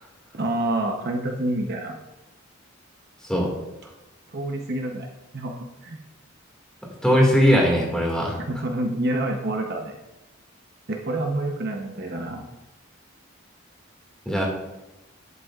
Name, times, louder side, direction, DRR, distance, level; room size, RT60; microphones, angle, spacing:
voice 1, 0.3-2.0 4.3-5.1 5.3-6.0 8.5-10.0 10.9-12.5, right 1 dB, 50° right, 2 dB, 0.8 m, -27 dB
voice 2, 7.0-8.4 14.3-14.4, equal, 5° left, -2 dB, 2.0 m, -19 dB
11.0 x 8.3 x 2.4 m, 0.97 s
head